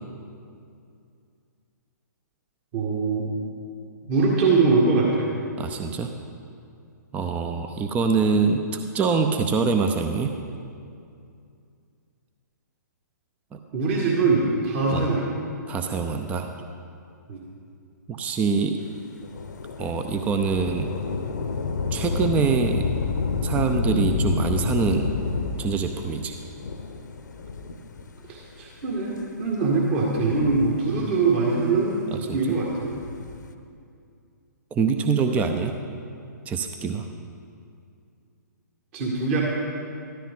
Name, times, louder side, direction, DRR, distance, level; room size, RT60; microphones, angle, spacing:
voice 1, 2.7-3.3 4.0-5.3 13.7-15.3 17.3-17.4 28.3-32.9 38.9-39.4, right 3 dB, 40° right, -3 dB, 1.9 m, -23 dB
voice 2, 5.6-6.1 7.1-8.6 8.9-10.3 13.5-13.6 14.9-15.1 15.7-16.5 18.1-18.8 19.8-20.9 21.9-22.8 23.4-25.1 25.6-26.4 32.1-32.4 34.7-35.7 36.5-37.1, right 5 dB, 15° right, 6 dB, 0.5 m, -24 dB
Thunder / Rain, 19.2-28.2 28.9-29.0 30.0-31.2 32.8-33.5, left 4 dB, 70° left, 0.9 m, -29 dB
14.0 x 13.0 x 3.7 m, 2.4 s
figure-of-eight pair, 125°, 10 cm